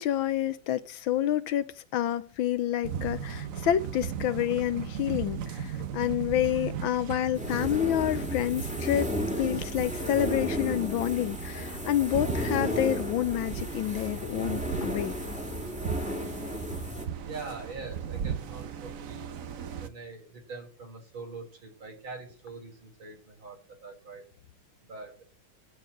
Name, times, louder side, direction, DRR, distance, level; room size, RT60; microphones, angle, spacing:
voice 1, 0.0-9.1 9.4-15.1, left 11 dB, 75° left, 1.5 m, -28 dB
sound 1, 2.8-19.9, right 8 dB, 55° right, 1.0 m, -38 dB
sound 2, 7.3-17.1, equal, 5° right, 1.9 m, -34 dB
voice 2, 17.2-19.3 19.8-24.2 24.9-25.2, right 4 dB, 75° right, 4.9 m, -43 dB
13.5 x 4.6 x 8.6 m
omnidirectional pair, 2.2 m